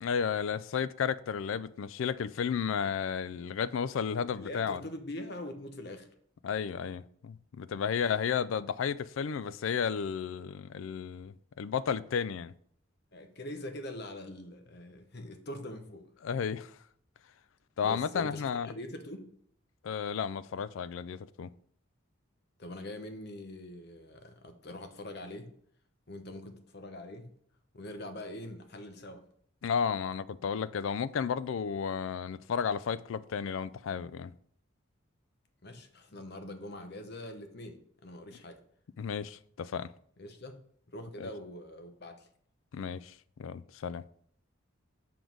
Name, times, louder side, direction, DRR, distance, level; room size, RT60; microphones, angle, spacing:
voice 1, 0.0-4.8 6.4-12.5 16.2-16.8 17.8-18.7 19.8-21.5 29.6-34.3 39.0-39.9 41.2-41.3 42.7-43.1 43.4-44.0, left 7 dB, 70° left, 0.3 m, -33 dB
voice 2, 4.4-6.1 13.1-16.1 17.8-19.3 22.6-25.5 26.1-27.3 27.7-29.2 35.6-38.6 40.2-40.6 40.9-42.3, left 1 dB, 50° left, 0.9 m, -43 dB
7.0 x 3.8 x 6.1 m
head